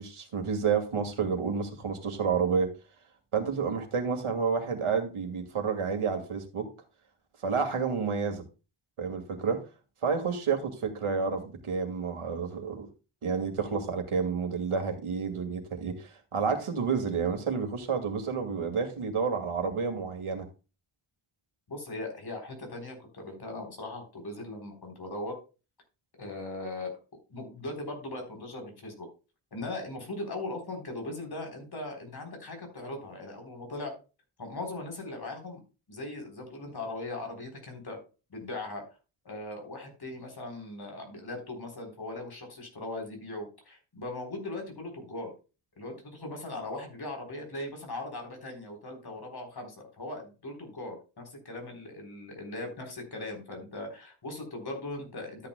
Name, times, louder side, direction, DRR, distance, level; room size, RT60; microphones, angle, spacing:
voice 1, 0.0-2.7 3.3-6.7 7.4-8.4 9.0-9.6 10.0-12.9 13.2-20.5, right 5 dB, 80° right, 5 dB, 2.2 m, -30 dB
voice 2, 21.7-25.4 26.1-27.0 27.3-29.1 29.5-33.9 34.4-35.6 35.9-38.0 38.3-38.8 39.2-45.3 45.8-55.5, left 2 dB, 50° left, 3 dB, 3.9 m, -39 dB
13.0 x 8.9 x 2.2 m, 0.31 s
wide cardioid pair, 135°, 50 cm